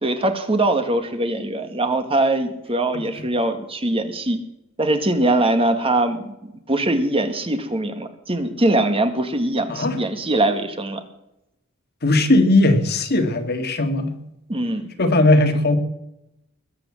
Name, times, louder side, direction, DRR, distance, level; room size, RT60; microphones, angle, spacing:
voice 1, 0.0-4.4 4.8-6.3 6.7-11.0 14.5-14.9, right 2 dB, 25° right, 8 dB, 1.6 m, -22 dB
voice 2, 12.0-14.1 15.0-15.8, left 2 dB, 50° left, 6 dB, 2.0 m, -18 dB
20.5 x 7.8 x 7.6 m, 0.84 s
head